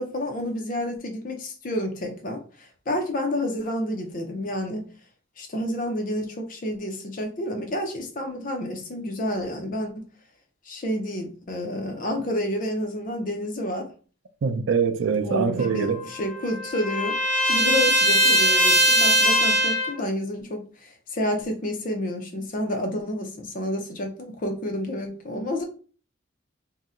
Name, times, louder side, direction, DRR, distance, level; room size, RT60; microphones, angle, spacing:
voice 1, 0.0-4.9 5.4-10.0 10.7-13.9 15.2-17.2 17.4-25.6, left 1 dB, 40° left, 0.5 m, -29 dB
voice 2, 14.4-16.0, right 5 dB, 70° right, 0.4 m, -24 dB
Trumpet, 15.6-20.0, right 1 dB, 30° right, 0.9 m, -21 dB
2.7 x 2.0 x 3.6 m
head